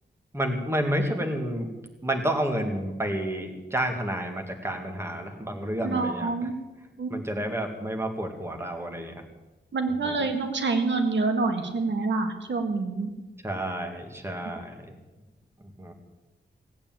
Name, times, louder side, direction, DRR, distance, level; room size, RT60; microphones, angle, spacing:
voice 1, 0.3-1.7 2.0-6.5 7.1-9.2 9.9-10.3 13.4-14.9 15.6-15.9, right 1 dB, 15° right, 4 dB, 2.0 m, -30 dB
voice 2, 5.8-6.5 7.0-7.1 9.7-13.1, right 3 dB, 75° right, 5 dB, 1.8 m, -27 dB
17.5 x 8.7 x 9.0 m, 1.1 s
wide cardioid pair, 160°, 19 cm